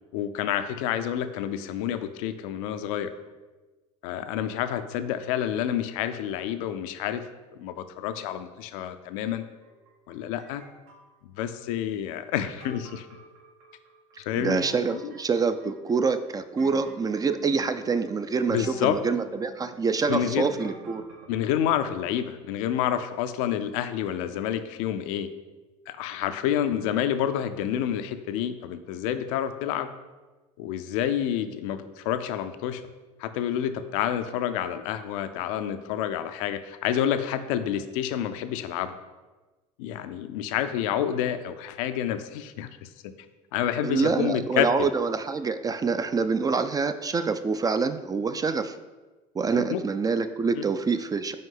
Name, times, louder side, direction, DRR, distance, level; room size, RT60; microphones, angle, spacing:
voice 1, 0.1-3.1 4.0-7.3 7.6-9.4 10.1-10.6 11.2-13.1 14.2-14.6 14.9-15.1 18.5-19.0 20.1-20.5 21.3-25.3 25.9-29.9 30.6-32.8 33.2-38.9 39.8-43.1 43.5-44.7 49.5-49.8 50.6-50.7, left 10 dB, 75° left, 10 dB, 0.4 m, -29 dB
sound 1, 9.6-11.2 12.4-21.5, right 3 dB, 70° right, 1.1 m, -50 dB
voice 2, 14.4-21.0 43.8-48.8 49.3-51.3, right 4 dB, 20° right, 10 dB, 0.3 m, -26 dB
5.3 x 4.6 x 3.9 m, 1.2 s
hypercardioid pair, 85°, 18 cm